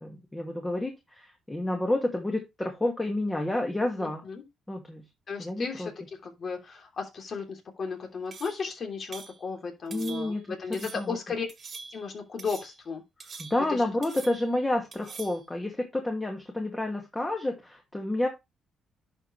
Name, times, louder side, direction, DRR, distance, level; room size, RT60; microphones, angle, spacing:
voice 1, 0.0-4.2 4.7-5.0 5.4-5.9 9.9-11.2 13.4-18.3, left 1 dB, 15° left, 2 dB, 2.0 m, -30 dB
voice 2, 4.0-4.4 5.3-5.9 6.2-11.5 11.9-13.0 13.7-13.8, left 5 dB, 50° left, 3 dB, 3.1 m, -35 dB
sound 1, 8.3-8.7 9.1-9.4 9.9-10.4 10.7-11.1 11.5-12.1 12.4-12.8 13.2-13.8 14.0-14.6 14.9-15.4, right 5 dB, 45° right, 1.8 m, -45 dB
11.0 x 5.3 x 3.2 m, 0.22 s
cardioid pair, 90°, 0 cm